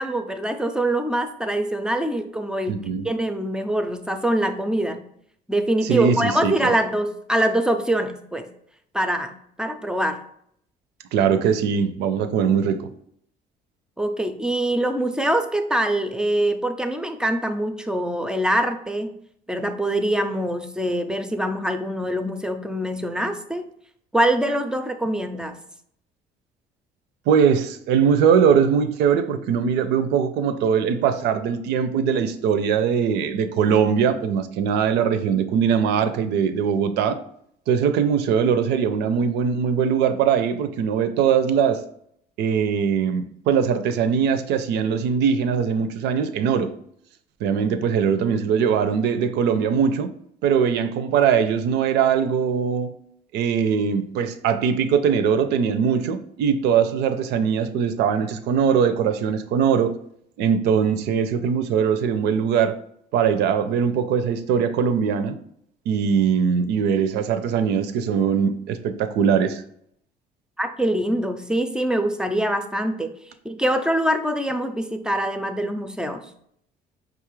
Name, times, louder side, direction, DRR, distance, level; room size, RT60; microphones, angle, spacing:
voice 1, 0.0-5.0 5.5-8.5 8.9-10.2 14.0-19.1 19.5-23.6 24.1-25.6 70.6-73.1 73.4-76.3, right 1 dB, 5° right, 0.4 m, -24 dB
voice 2, 2.7-3.1 5.8-6.7 11.1-12.8 27.3-37.2 37.7-41.8 42.4-46.7 47.4-50.1 50.4-53.0 53.3-59.9 60.4-62.8 63.1-65.4 65.9-69.6, right 7 dB, 85° right, 0.5 m, -21 dB
5.2 x 2.4 x 3.0 m
cardioid pair, 110°, 17 cm